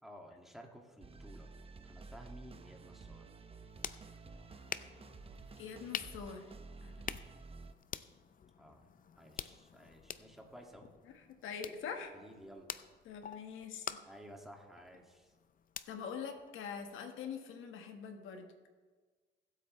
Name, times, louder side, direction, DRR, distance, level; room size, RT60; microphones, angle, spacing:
voice 1, 0.0-1.5 1.8-3.3 8.6-8.8 9.2-10.8 12.1-12.7 14.0-15.3, equal, ahead, 1 dB, 2.2 m, -54 dB
sound 1, 1.0-7.7, right 3 dB, 30° right, 0.8 m, -52 dB
sound 2, 3.4-17.1, left 8 dB, 45° left, 0.6 m, -48 dB
voice 2, 5.6-6.5 6.8-7.2 11.1-12.1 13.0-14.0 15.9-18.5, left 6 dB, 90° left, 5 dB, 1.5 m, -44 dB
21.0 x 8.4 x 3.2 m, 1.4 s
cardioid pair, 90°, 20 cm